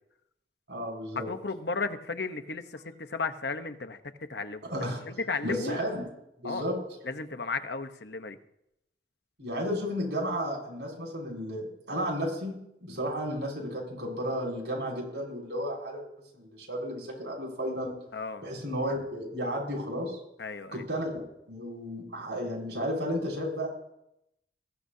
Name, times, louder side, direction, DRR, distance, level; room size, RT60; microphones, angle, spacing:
voice 1, 0.7-1.3 4.7-5.0 5.4-6.1 6.4-6.7 9.4-16.0 16.3-17.9 18.4-20.2 20.7-21.2 21.5-23.7, equal, 80° right, -1 dB, 6.5 m, -33 dB
voice 2, 1.3-4.0 4.3-4.6 5.1-5.8 6.4-6.7 7.0-8.4 18.1-18.4 20.4-20.9, left 4 dB, 70° left, 9 dB, 0.9 m, -34 dB
22.5 x 15.0 x 2.8 m, 0.83 s
head